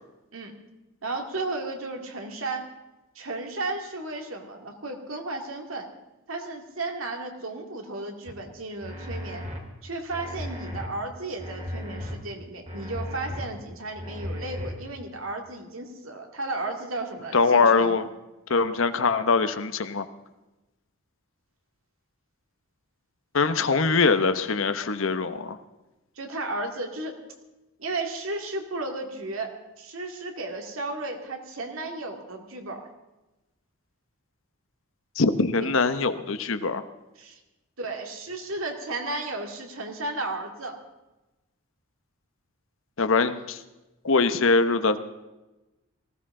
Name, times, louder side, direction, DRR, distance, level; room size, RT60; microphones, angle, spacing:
voice 1, 1.0-2.7 3.2-5.9 6.3-9.4 9.8-18.0 26.2-27.1 27.8-32.9 35.6-35.7 37.2-37.4 37.8-40.8, right 2 dB, 70° right, 3 dB, 2.2 m, -34 dB
sound 1, 8.3-8.4 8.8-9.6 10.1-10.9 11.4-12.2 12.7-13.4 13.9-14.7, left 1 dB, 30° right, 2.3 m, -35 dB
voice 2, 17.3-18.0 18.5-20.0 23.3-25.6 35.2-36.8 43.0-43.6 44.0-45.0, left 4 dB, 65° left, 11 dB, 0.9 m, -22 dB
19.0 x 16.0 x 3.8 m, 1.0 s
head